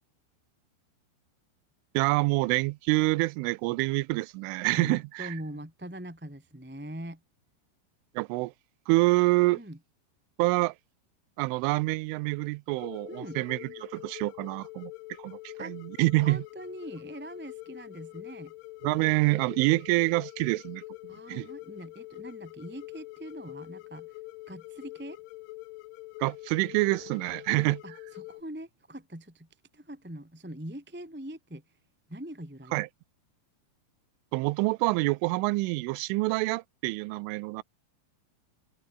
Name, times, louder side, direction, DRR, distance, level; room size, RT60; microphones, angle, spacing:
voice 1, 1.9-5.3 8.2-8.5 8.9-9.6 10.4-10.7 11.4-14.9 15.2-16.4 18.8-20.8 21.3-21.5 26.2-27.8 32.7-32.9 34.3-37.6, right 22 dB, 85° right, 3.1 m, -27 dB
voice 2, 4.7-7.2 9.5-9.8 13.1-13.4 15.6-15.7 16.2-18.5 21.1-24.2 24.5-25.2 27.8-31.8 32.1-32.9, right 1 dB, 5° right, 2.2 m, -42 dB
sound 1, 12.8-28.4, left 19 dB, 80° left, 3.1 m, -45 dB
omnidirectional pair, 5.8 m